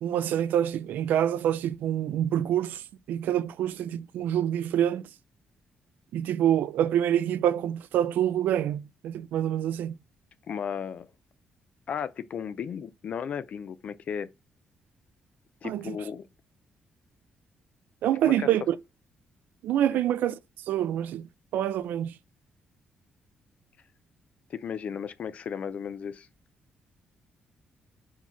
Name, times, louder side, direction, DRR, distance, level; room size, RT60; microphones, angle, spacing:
voice 1, 0.0-5.1 6.1-10.0 15.6-16.0 18.0-18.8 19.6-20.4 20.7-21.3 21.5-22.1, right 10 dB, 90° right, 0.5 m, -26 dB
voice 2, 10.5-11.1 11.9-14.3 15.6-16.2 18.2-18.5 19.9-20.0 24.5-26.3, left 7 dB, 50° left, 0.4 m, -35 dB
5.7 x 4.7 x 4.5 m
cardioid pair, 145°, 3 cm